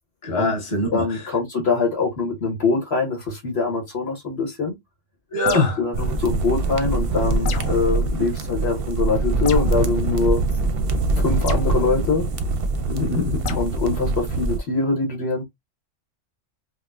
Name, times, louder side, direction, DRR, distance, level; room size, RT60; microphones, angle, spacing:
voice 1, 0.2-1.0 5.3-5.8 12.9-13.6, left 2 dB, 25° left, 1.2 m, -23 dB
voice 2, 0.9-4.7 5.8-10.4 11.2-12.3 13.5-15.4, left 4 dB, 55° left, 1.4 m, -23 dB
sound 1, 5.4-5.9 7.4-7.8 9.5-9.8 11.5-11.7 13.4-13.7, left 7 dB, 85° left, 1.1 m, -31 dB
sound 2, 5.9-14.6, right 3 dB, 60° right, 0.7 m, -23 dB
5.2 x 2.1 x 2.3 m
omnidirectional pair, 1.3 m